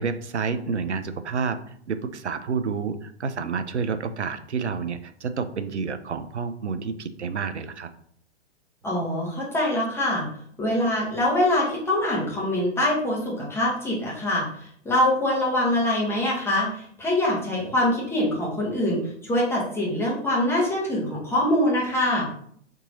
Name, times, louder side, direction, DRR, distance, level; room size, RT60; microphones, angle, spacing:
voice 1, 0.0-7.9, right 5 dB, 80° right, 10 dB, 0.5 m, -29 dB
voice 2, 8.8-10.3 10.6-22.3, left 1 dB, 5° left, -5 dB, 0.9 m, -24 dB
3.6 x 2.8 x 3.9 m, 0.63 s
figure-of-eight pair, 110°, 34 cm